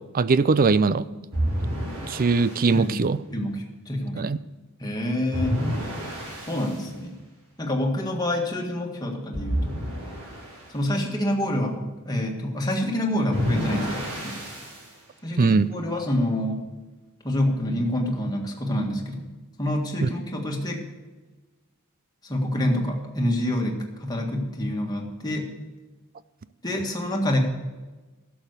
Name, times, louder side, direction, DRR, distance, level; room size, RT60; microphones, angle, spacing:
voice 1, 0.1-1.0 2.1-3.2 4.2-4.4 15.4-15.7 20.0-20.1, right 4 dB, 40° right, 16 dB, 0.4 m, -20 dB
sound 1, 1.3-2.7 5.3-6.8 9.3-10.7 13.3-14.9, equal, 75° right, 4.9 m, -29 dB
voice 2, 2.7-4.2 4.8-5.6 6.5-7.2 7.6-9.8 10.7-14.4 15.2-16.6 17.2-19.2 19.6-20.8 22.2-25.5 26.6-27.4, left 1 dB, 20° left, 0 dB, 1.7 m, -27 dB
11.5 x 7.1 x 8.1 m, 1.2 s
head